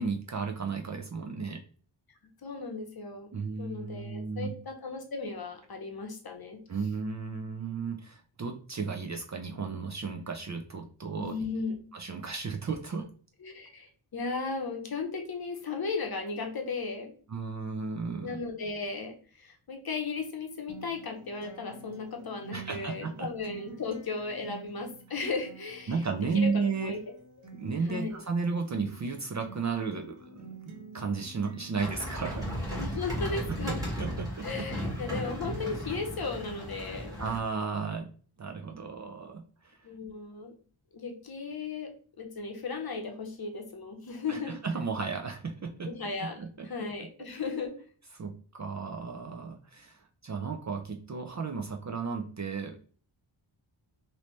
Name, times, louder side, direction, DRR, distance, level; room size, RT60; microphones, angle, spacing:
voice 1, 0.0-1.6 3.3-4.5 6.7-11.3 11.9-13.1 17.3-18.4 22.5-23.3 25.9-26.9 27.5-30.5 30.9-32.5 33.5-33.6 34.0-34.8 37.2-38.1 38.4-39.9 44.3-45.9 46.2-46.9 48.1-52.8, right 5 dB, 40° right, 3 dB, 0.4 m, -34 dB
voice 2, 2.4-3.3 3.6-6.6 11.1-11.8 13.4-17.1 18.2-26.0 26.3-27.0 27.9-28.2 32.7-33.8 34.4-37.2 39.8-40.5 40.9-41.9 42.2-44.6 45.8-47.7, left 4 dB, 50° left, 3 dB, 0.8 m, -36 dB
Acoustic guitar, 20.7-36.7, right 4 dB, 75° right, 1.2 m, -50 dB
sound 1, 31.8-37.4, equal, 10° right, 1.8 m, -35 dB
3.2 x 2.7 x 3.0 m, 0.42 s
wide cardioid pair, 135°, 49 cm